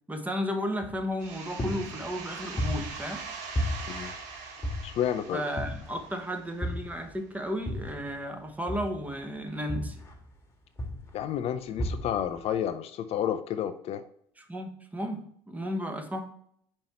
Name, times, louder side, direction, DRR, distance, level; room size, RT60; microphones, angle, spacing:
voice 1, 0.1-3.2 5.3-10.0 14.4-16.2, equal, 10° right, 5 dB, 1.1 m, -34 dB
sound 1, 0.8-1.3 1.6-3.3 3.6-5.2 5.6-6.1 6.6-8.2 8.7-10.4 10.8-11.2 11.8-12.4, left 1 dB, 20° left, 1.5 m, -34 dB
sound 2, 1.2-6.7, right 5 dB, 65° right, 1.3 m, -42 dB
voice 2, 4.8-5.4 11.1-14.0, left 10 dB, 50° left, 10 dB, 0.5 m, -30 dB
5.5 x 4.5 x 4.2 m, 0.66 s
hypercardioid pair, 80°, 14 cm